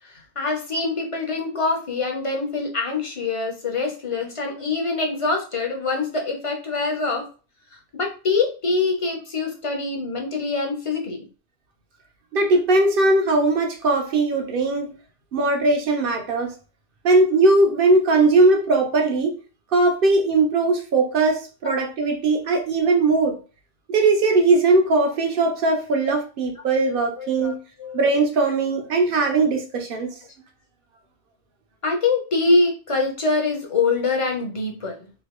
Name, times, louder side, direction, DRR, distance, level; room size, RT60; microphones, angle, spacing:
voice 1, 0.4-7.3 7.9-11.3 27.2-27.5 27.8-28.0 31.8-35.1, left 3 dB, 35° left, 0.7 m, -24 dB
voice 2, 12.3-14.9 15.3-16.5 17.0-19.4 19.7-23.4 23.9-27.6 27.9-30.1, right 2 dB, 55° right, 0.9 m, -19 dB
3.1 x 2.7 x 2.9 m
omnidirectional pair, 1.2 m